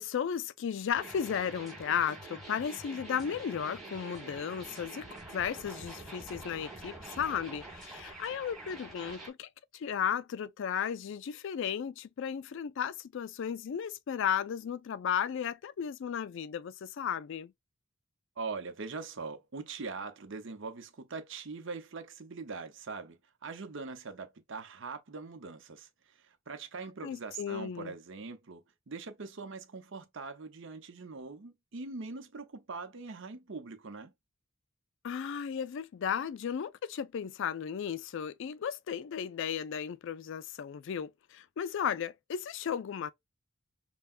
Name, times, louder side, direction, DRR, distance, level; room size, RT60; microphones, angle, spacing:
voice 1, 0.0-9.5 9.7-17.5 27.0-27.9 35.0-43.1, left 8 dB, 60° left, 0.3 m, -35 dB
sound 1, 0.9-9.3, right 2 dB, ahead, 2.1 m, -46 dB
voice 2, 18.4-25.9 26.2-34.1, right 4 dB, 60° right, 0.7 m, -42 dB
5.6 x 2.2 x 2.4 m
head